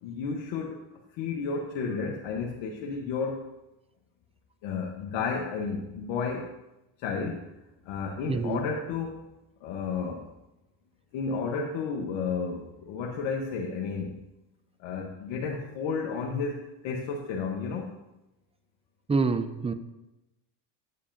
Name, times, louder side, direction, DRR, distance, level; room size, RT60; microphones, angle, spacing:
voice 1, 0.0-0.8 1.2-3.5 4.6-6.5 7.0-7.5 7.8-9.2 9.6-10.3 11.1-14.2 14.8-17.9, left 5 dB, 75° left, 0 dB, 1.1 m, -32 dB
voice 2, 8.3-8.6 19.1-19.7, right 4 dB, 15° right, 11 dB, 0.6 m, -26 dB
9.7 x 8.2 x 2.6 m, 0.95 s
supercardioid pair, 70°, 46 cm